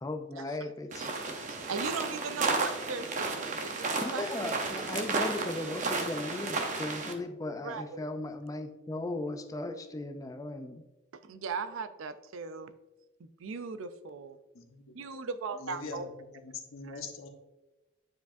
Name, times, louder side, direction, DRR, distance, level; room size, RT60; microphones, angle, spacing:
voice 1, 0.0-1.4 4.2-10.9, left 2 dB, 15° left, 0.4 m, -37 dB
sound 1, 0.9-7.1, right 3 dB, 40° right, 0.7 m, -33 dB
voice 2, 1.4-5.1 5.4-5.5 7.6-8.0 11.1-12.7 13.4-14.4 14.9-16.1 16.8-17.0, right 5 dB, 80° right, 0.4 m, -38 dB
voice 3, 14.5-15.2 15.6-16.0 16.4-17.3, left 4 dB, 85° left, 0.9 m, -43 dB
9.3 x 4.8 x 2.6 m
head